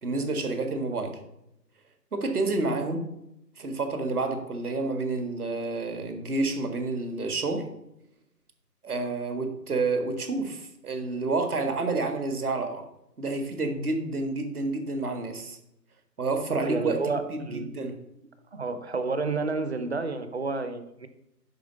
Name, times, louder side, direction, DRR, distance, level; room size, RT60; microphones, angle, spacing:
voice 1, 0.0-1.2 2.1-3.1 3.6-7.7 8.8-12.8 13.2-15.6 16.2-18.0, right 3 dB, 60° right, 5 dB, 1.9 m, -29 dB
voice 2, 16.5-17.7 18.5-21.1, right 3 dB, 40° right, 10 dB, 0.9 m, -30 dB
10.5 x 4.2 x 6.8 m, 0.83 s
figure-of-eight pair, 155°, 50 cm